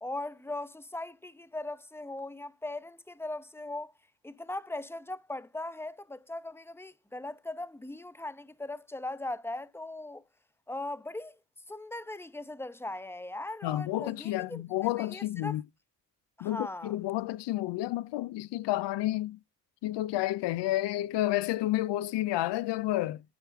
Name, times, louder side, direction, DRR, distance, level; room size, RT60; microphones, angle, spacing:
voice 1, 0.0-3.9 4.2-10.2 10.7-11.3 11.7-14.6 15.0-15.6 16.4-16.9, left 2 dB, 5° left, 0.9 m, -39 dB
voice 2, 13.6-15.6 16.4-19.4 19.8-23.2, left 15 dB, 85° left, 0.5 m, -30 dB
10.0 x 4.6 x 3.5 m
supercardioid pair, 55°, 41 cm